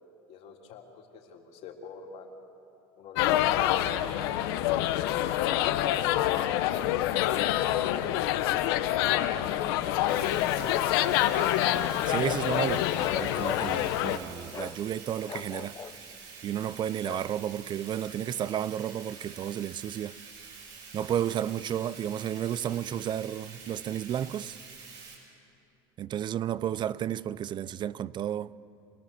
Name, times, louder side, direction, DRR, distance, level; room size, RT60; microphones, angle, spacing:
voice 1, 0.3-2.3 2.9-6.1, left 5 dB, 60° left, 3.1 m, -47 dB
sound 1, 3.2-14.2, left 13 dB, 85° left, 0.9 m, -26 dB
Bathtub (filling or washing), 10.1-25.1, right 5 dB, 70° right, 7.2 m, -47 dB
voice 2, 12.1-12.9 13.1-15.8 16.4-20.2 20.9-24.6 26.0-28.5, right 10 dB, 40° right, 0.5 m, -32 dB
Bark, 12.9-13.8 14.5-14.8 15.2-16.0 17.0-17.3, left 7 dB, 30° left, 0.6 m, -39 dB
27.0 x 19.0 x 7.1 m
supercardioid pair, 110°, 12 cm